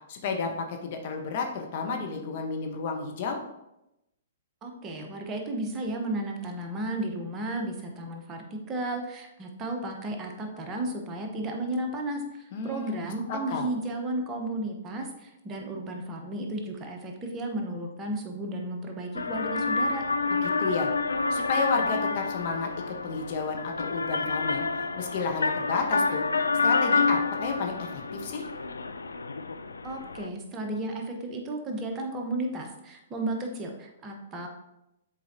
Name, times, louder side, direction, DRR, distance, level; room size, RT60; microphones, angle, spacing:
voice 1, 0.1-3.4 12.5-13.7 20.4-20.9 21.3-28.4, left 4 dB, 50° left, 3 dB, 1.0 m, -32 dB
voice 2, 4.6-20.0 29.8-34.5, right 1 dB, 25° right, 2 dB, 1.0 m, -33 dB
sound 1, 19.1-30.3, left 4 dB, 90° left, 0.4 m, -28 dB
7.4 x 4.5 x 2.8 m, 0.87 s
hypercardioid pair, 125°, 0 cm